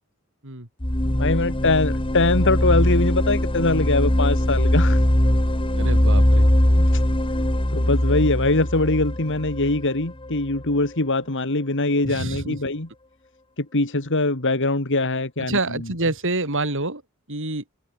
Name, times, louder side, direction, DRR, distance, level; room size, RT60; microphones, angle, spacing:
sound 1, 0.8-10.6, left 1 dB, 25° left, 2.0 m, -20 dB
voice 1, 1.0-5.0 6.8-7.0 7.7-12.9 13.6-15.8, left 2 dB, 55° left, 2.6 m, -22 dB
voice 2, 5.7-6.5 12.0-12.6 15.5-17.0 17.3-17.6, right 2 dB, 60° right, 6.5 m, -27 dB
head